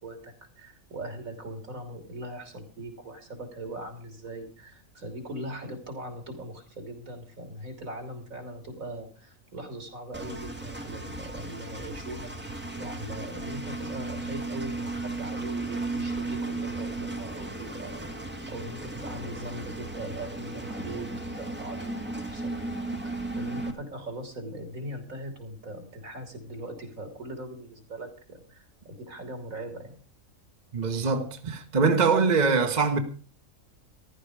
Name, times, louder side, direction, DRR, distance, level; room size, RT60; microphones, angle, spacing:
voice 1, 0.0-12.3 12.8-22.5 23.0-29.9, right 1 dB, 80° right, 3.6 m, -40 dB
Engine, 10.1-23.7, right 2 dB, 10° right, 1.7 m, -35 dB
voice 2, 30.7-33.0, right 4 dB, 35° right, 1.4 m, -23 dB
14.5 x 12.0 x 4.9 m
omnidirectional pair, 1.4 m